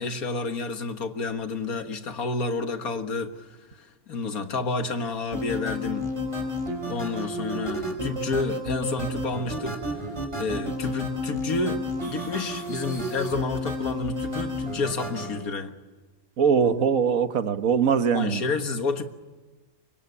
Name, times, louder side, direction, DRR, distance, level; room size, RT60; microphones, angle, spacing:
voice 1, 0.0-3.3 3.8-6.1 6.9-9.8 10.4-15.7 18.1-19.0, left 3 dB, 85° left, 7 dB, 2.0 m, -30 dB
sound 1, 5.3-15.4, left 1 dB, 20° right, 4.8 m, -31 dB
voice 2, 16.4-18.4, right 6 dB, 70° right, 9 dB, 1.6 m, -22 dB
25.5 x 22.5 x 8.5 m, 1.3 s
omnidirectional pair, 1.5 m